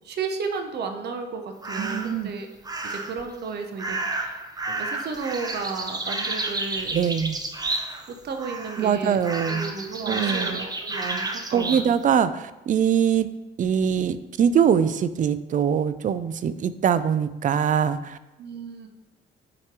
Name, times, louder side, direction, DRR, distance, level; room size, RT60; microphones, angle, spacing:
voice 1, 0.0-2.5 2.8-4.3 4.7-7.0 8.1-9.2 9.4-11.9 18.4-18.9, right 4 dB, 55° right, 5 dB, 0.8 m, -33 dB
sound 1, 1.6-2.2 2.7-3.2 3.8-8.1 8.4-8.9 9.2-11.9, right 2 dB, 20° right, 0.7 m, -31 dB
voice 2, 1.8-2.3 6.9-7.4 8.8-9.7 10.1-10.7 11.5-13.3 13.6-18.2, right 8 dB, 40° right, 14 dB, 0.4 m, -23 dB
7.7 x 2.9 x 4.6 m, 0.99 s
cardioid pair, 90°, 20 cm